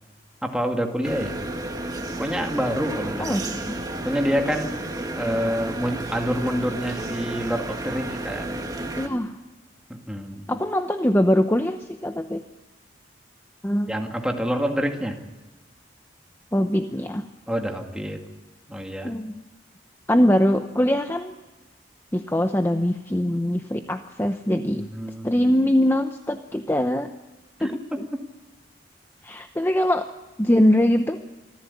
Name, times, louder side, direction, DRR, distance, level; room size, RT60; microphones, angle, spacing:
voice 1, 0.4-1.3 2.1-3.4 4.0-8.6 9.9-10.5 13.9-15.2 17.5-18.2 18.7-19.1 24.8-25.3 27.6-28.0, equal, 5° right, 3 dB, 2.1 m, -27 dB
sound 1, 1.0-9.1, right 1 dB, 20° right, 1.9 m, -32 dB
voice 2, 3.2-3.8 9.0-9.4 10.5-12.4 13.6-13.9 16.5-17.2 19.0-19.3 20.1-21.4 22.1-24.9 25.2-27.1 27.6-28.0 29.2-30.1 30.4-31.2, equal, 10° left, 7 dB, 0.8 m, -22 dB
25.5 x 14.5 x 8.5 m, 1.1 s
head